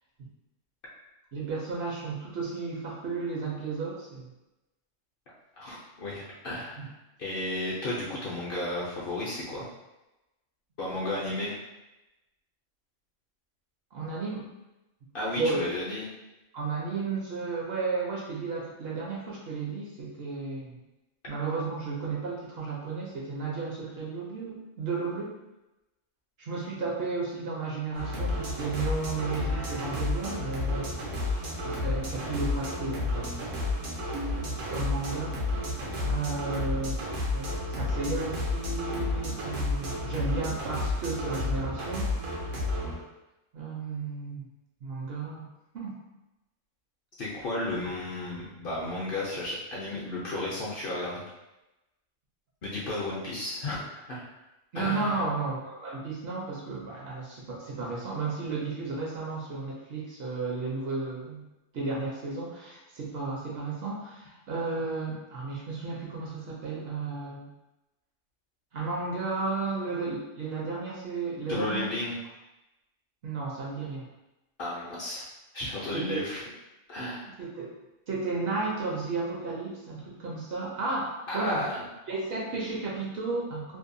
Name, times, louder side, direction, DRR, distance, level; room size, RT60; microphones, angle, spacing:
voice 1, 1.3-4.3 6.8-6.9 13.9-14.5 15.3-15.6 16.5-20.8 21.3-25.4 26.4-33.6 34.7-35.4 36.0-37.0 37.3-42.1 43.5-44.5 44.8-45.5 45.7-46.0 54.7-61.5 61.7-67.5 68.7-71.9 73.2-74.1 75.9-76.2 77.6-77.7 78.1-81.6 82.1-83.8, right 3 dB, 60° right, -4 dB, 0.7 m, -33 dB
voice 2, 5.6-6.9 7.2-9.7 10.8-11.6 15.1-16.1 47.2-51.2 52.6-53.8 54.1-54.2 54.7-55.2 71.5-72.2 74.6-75.2 75.5-76.4 76.9-77.3 81.3-81.7, left 2 dB, 60° left, -6 dB, 0.7 m, -33 dB
sound 1, 27.9-43.0, left 2 dB, 80° right, 1.0 m, -31 dB
2.6 x 2.1 x 2.5 m, 0.99 s
omnidirectional pair, 1.3 m